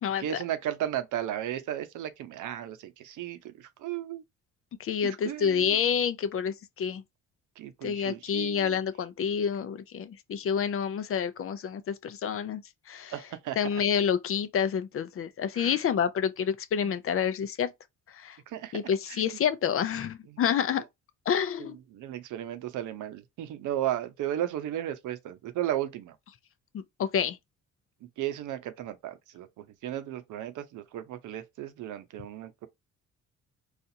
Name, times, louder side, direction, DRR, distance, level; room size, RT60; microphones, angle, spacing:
voice 1, 0.2-4.2 5.0-5.8 7.6-8.8 13.1-13.6 15.5-15.8 16.8-16.9 18.5-18.8 19.1-19.4 20.3-20.4 21.6-26.1 28.2-32.7, right 12 dB, 80° right, 0.7 m, -35 dB
voice 2, 4.8-7.0 7.8-12.6 12.9-13.1 13.6-17.7 18.2-18.4 18.7-20.8 21.3-21.8 26.7-27.4, left 7 dB, 45° left, 0.5 m, -28 dB
4.1 x 2.4 x 2.7 m
cardioid pair, 90°, 30 cm